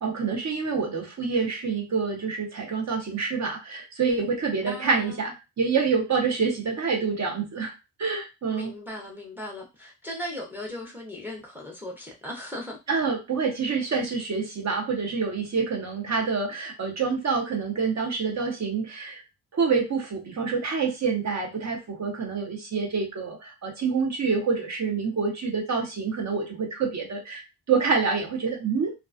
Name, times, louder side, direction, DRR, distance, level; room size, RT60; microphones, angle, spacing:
voice 1, 0.0-7.7 8.0-8.7 12.9-19.2 19.5-27.4 27.7-28.9, right 5 dB, 45° right, 0.7 m, -27 dB
voice 2, 4.7-5.2 8.5-12.8, left 1 dB, 5° right, 0.6 m, -37 dB
2.3 x 2.2 x 2.4 m
wide cardioid pair, 155°, 39 cm